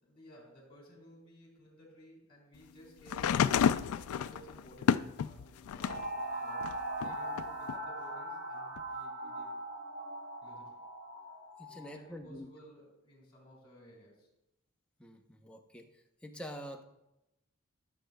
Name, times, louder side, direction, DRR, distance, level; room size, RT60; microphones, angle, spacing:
voice 1, 0.0-6.7 7.0-9.6 10.4-10.8 11.6-14.3, equal, 25° left, -3 dB, 3.6 m, -57 dB
sound 1, 3.1-6.1 6.6-7.8 8.8-8.9, left 8 dB, 90° left, 0.3 m, -30 dB
sound 2, 5.8-11.9, right 1 dB, 50° right, 2.4 m, -40 dB
voice 2, 11.6-12.5 15.0-15.9 16.2-16.8, equal, 5° left, 2 dB, 0.7 m, -46 dB
15.5 x 7.5 x 2.2 m, 0.90 s
head